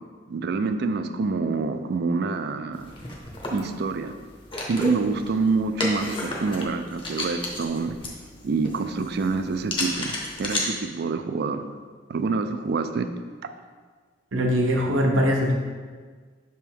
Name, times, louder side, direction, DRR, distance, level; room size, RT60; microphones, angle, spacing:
voice 1, 0.3-2.9 3.5-4.1 4.6-7.9 8.4-10.1 10.4-11.6 12.1-13.1, right 4 dB, 50° right, 9 dB, 0.3 m, -26 dB
sound 1, 2.7-10.6, left 1 dB, 25° left, 0.8 m, -33 dB
voice 2, 14.3-15.5, equal, 70° right, 0 dB, 0.9 m, -21 dB
6.0 x 3.5 x 4.6 m, 1.5 s
head